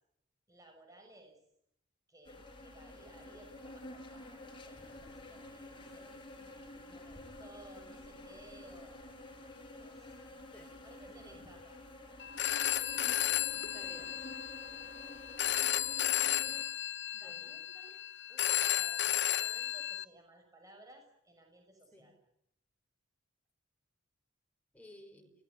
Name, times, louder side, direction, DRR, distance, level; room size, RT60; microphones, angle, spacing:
voice 1, 0.5-1.4 2.1-6.3 6.8-11.8 17.2-18.0 18.3-22.2, right 1 dB, 15° right, 3 dB, 6.5 m, -58 dB
sound 1, 2.2-16.6, left 1 dB, 25° left, 5.8 m, -50 dB
voice 2, 11.1-11.5 13.7-14.2 17.1-17.6 21.9-22.1 24.7-25.3, left 1 dB, 5° left, 3 dB, 5.4 m, -56 dB
Telephone, 12.2-20.0, left 12 dB, 55° left, 1.0 m, -33 dB
29.0 x 19.0 x 9.4 m, 0.76 s
head